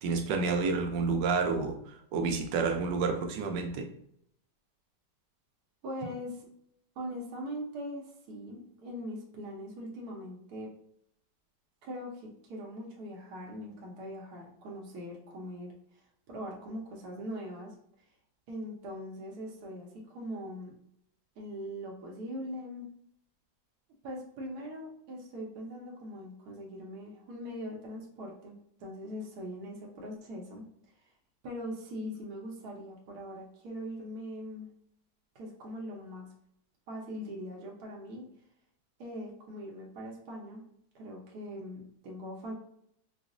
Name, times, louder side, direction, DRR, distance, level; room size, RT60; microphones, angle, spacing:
voice 1, 0.0-1.8 2.1-3.9, right 4 dB, 85° right, 4 dB, 1.3 m, -29 dB
voice 2, 5.8-6.5 7.0-10.7 11.8-15.7 16.3-17.7 18.5-20.7 21.4-22.9 24.0-30.6 31.4-34.7 35.3-36.3 36.9-38.2 39.0-40.6 40.9-42.5, equal, 70° right, -2 dB, 1.2 m, -41 dB
4.7 x 2.0 x 2.5 m, 0.71 s
omnidirectional pair, 1.9 m